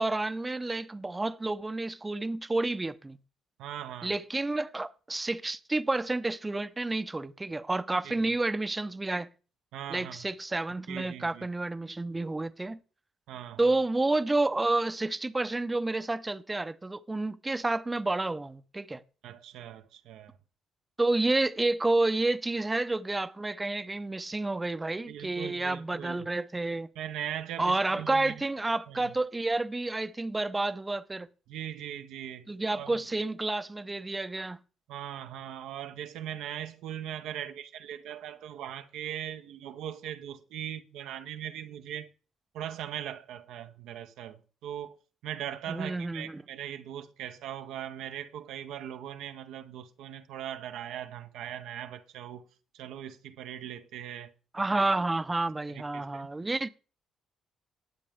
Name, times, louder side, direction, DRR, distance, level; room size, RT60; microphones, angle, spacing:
voice 1, 0.0-3.2 4.0-9.3 9.9-12.8 13.6-19.0 21.0-26.9 27.6-31.3 32.5-34.6 45.7-46.4 54.5-56.7, right 2 dB, 20° right, 0.7 m, -30 dB
voice 2, 3.6-4.1 8.0-8.3 9.7-10.3 10.9-11.5 13.3-13.7 19.2-20.3 25.1-26.1 27.0-28.3 28.9-29.1 31.5-32.5 32.8-32.9 34.9-42.1 42.5-45.0 45.2-52.4 52.7-54.3 55.7-56.3, right 10 dB, 80° right, 0.8 m, -40 dB
19.0 x 7.4 x 3.5 m
supercardioid pair, 55°, 0 cm